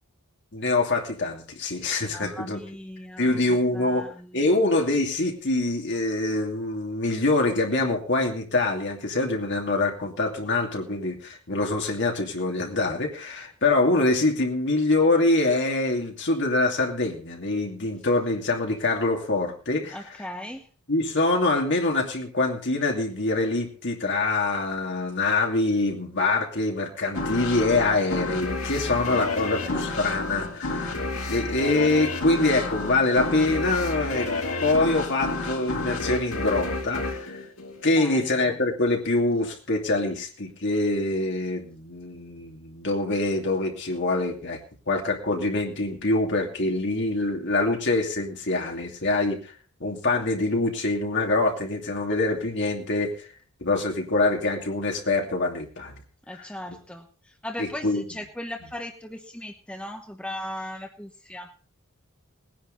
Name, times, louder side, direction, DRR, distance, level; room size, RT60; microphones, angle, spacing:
voice 1, 0.5-2.6 3.2-4.1 4.3-20.0 20.9-34.3 34.6-37.4 37.8-44.6 44.9-49.5 49.8-53.3 53.6-55.9 57.6-58.0, left 2 dB, 55° left, 1 dB, 2.7 m, -25 dB
voice 2, 2.1-4.6 19.9-20.7 28.8-29.9 37.9-38.6 56.3-61.5, left 1 dB, 5° left, 3 dB, 1.0 m, -38 dB
sound 1, 27.1-38.3, left 2 dB, 75° left, 2.5 m, -30 dB
19.0 x 10.5 x 4.0 m, 0.40 s
head